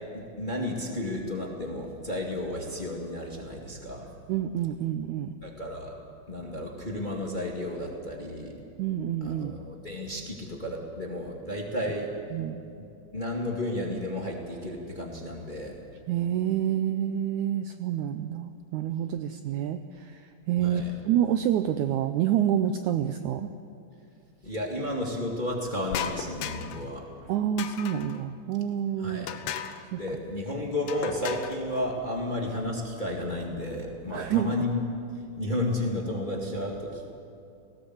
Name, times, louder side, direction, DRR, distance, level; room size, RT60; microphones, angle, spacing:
voice 1, 0.1-4.1 5.4-5.9 6.3-8.5 9.2-12.1 12.7-12.9 13.1-15.7 20.6-20.9 24.4-27.0 29.0-29.3 29.9-34.8 35.4-37.0, left 1 dB, 20° left, -1 dB, 1.6 m, -32 dB
voice 2, 4.3-5.3 8.8-9.5 12.3-12.6 16.1-23.5 27.3-29.3 29.9-30.0 34.1-34.6, right 10 dB, 80° right, 9 dB, 1.8 m, -28 dB
sound 1, 25.9-26.9 27.6-28.2 29.3-29.9 30.9-31.6, left 9 dB, 70° left, 1.9 m, -35 dB
19.0 x 17.5 x 7.9 m, 2.6 s
omnidirectional pair, 4.1 m